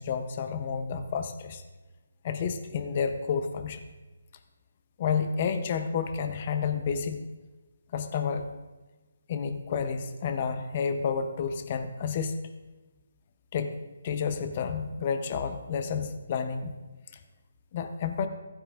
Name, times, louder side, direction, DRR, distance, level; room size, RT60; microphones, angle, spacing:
voice 1, 0.0-1.6 2.2-3.8 5.0-7.2 7.9-8.5 9.3-12.4 13.5-13.8 14.0-16.7 17.7-18.3, left 6 dB, 40° left, 8 dB, 0.7 m, -30 dB
15.0 x 9.5 x 2.5 m, 1.2 s
hypercardioid pair, 155°, 0 cm